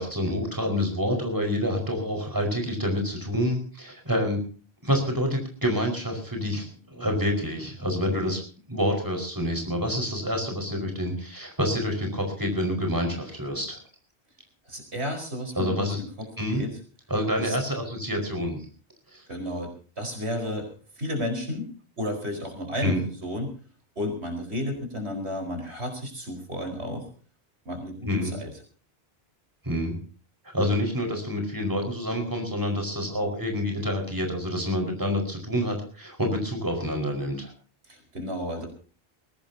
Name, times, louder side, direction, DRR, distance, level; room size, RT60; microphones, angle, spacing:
voice 1, 0.0-4.4 4.8-8.4 8.7-13.8 15.5-16.0 16.4-16.6 17.1-18.7 19.1-19.2 22.8-23.0 28.0-28.3 29.6-30.0 30.5-37.5, equal, 20° right, 3 dB, 4.9 m, -27 dB
voice 2, 14.7-15.9 16.5-16.7 17.4-17.6 19.3-20.7 21.0-21.7 22.0-23.5 24.0-27.1 27.6-28.5 37.9-38.7, left 1 dB, 90° right, 4 dB, 5.0 m, -32 dB
22.0 x 17.5 x 2.8 m, 0.40 s
omnidirectional pair, 1.1 m